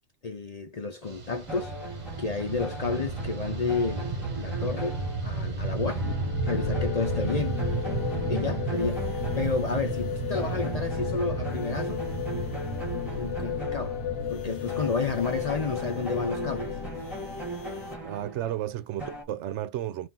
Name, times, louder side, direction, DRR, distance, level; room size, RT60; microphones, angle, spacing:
voice 1, 0.2-1.8 2.2-6.1 6.4-7.6 8.3-12.0 13.1-14.0 14.3-16.8, left 4 dB, 45° left, 0.6 m, -31 dB
Fixed-wing aircraft airplane, 1.0-18.5, right 3 dB, 40° right, 1.0 m, -34 dB
sound 1, 1.5-5.6 5.9-10.0 10.3-14.4 14.7-19.2, right 2 dB, ahead, 1.7 m, -39 dB
sound 2, 6.0-17.9, left 11 dB, 85° left, 0.9 m, -35 dB
voice 2, 18.0-20.1, right 12 dB, 90° right, 0.9 m, -33 dB
3.7 x 2.4 x 4.2 m
omnidirectional pair, 1.2 m